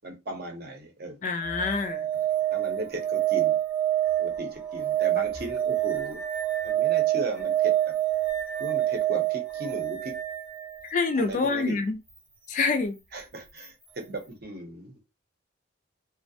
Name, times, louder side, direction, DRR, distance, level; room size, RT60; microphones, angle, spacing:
voice 1, 0.0-1.2 2.5-3.6 4.2-6.2 6.6-7.9 8.6-10.1 11.2-11.7 13.1-15.0, right 1 dB, 50° right, 0.7 m, -37 dB
voice 2, 1.2-2.1 10.9-12.0 12.5-13.0, left 4 dB, 40° left, 0.3 m, -26 dB
sound 1, 1.4-11.2 13.6-13.7, right 13 dB, 10° right, 0.5 m, -27 dB
2.3 x 2.0 x 2.6 m
head